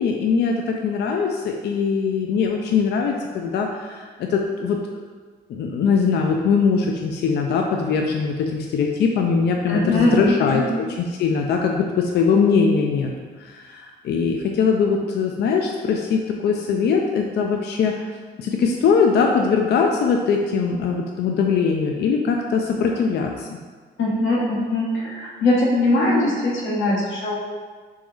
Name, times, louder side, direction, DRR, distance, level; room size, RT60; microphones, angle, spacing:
voice 1, 0.0-4.8 5.5-13.1 13.4-18.0 18.4-23.5, left 5 dB, 60° left, 2 dB, 0.4 m, -21 dB
voice 2, 9.7-10.7 24.0-27.4, left 2 dB, 75° left, -3 dB, 1.0 m, -21 dB
3.6 x 3.0 x 3.2 m, 1.5 s
cardioid pair, 90°, 20 cm